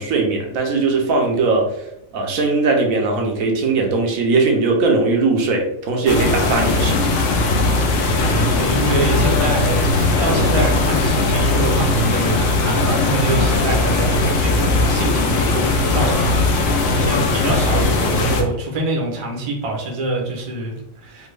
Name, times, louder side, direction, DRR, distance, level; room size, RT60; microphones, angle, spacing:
voice 1, 0.0-1.7 2.1-7.1, right 3 dB, 80° right, 1 dB, 1.1 m, -19 dB
sound 1, 6.1-18.4, left 2 dB, 70° left, 0.9 m, -18 dB
voice 2, 8.2-21.3, right 2 dB, 35° right, 0 dB, 0.5 m, -25 dB
3.4 x 2.1 x 3.2 m, 0.78 s
omnidirectional pair, 1.4 m